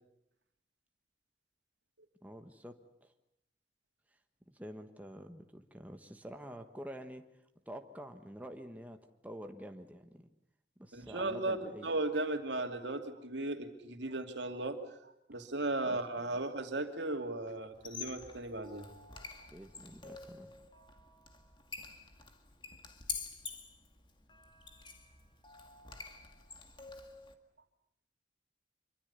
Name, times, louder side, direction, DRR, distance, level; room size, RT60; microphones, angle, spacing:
voice 1, 2.2-3.1 4.5-7.2 7.7-9.0 9.2-10.3 10.8-11.9 15.8-16.0 19.5-20.6, equal, 10° right, 5 dB, 1.3 m, -48 dB
voice 2, 10.9-14.8 15.3-18.9 19.2-19.3, right 2 dB, 85° right, 5 dB, 2.7 m, -36 dB
Squeak, 17.7-27.3, left 5 dB, 25° left, 2.1 m, -47 dB
26.0 x 24.0 x 6.9 m, 0.80 s
head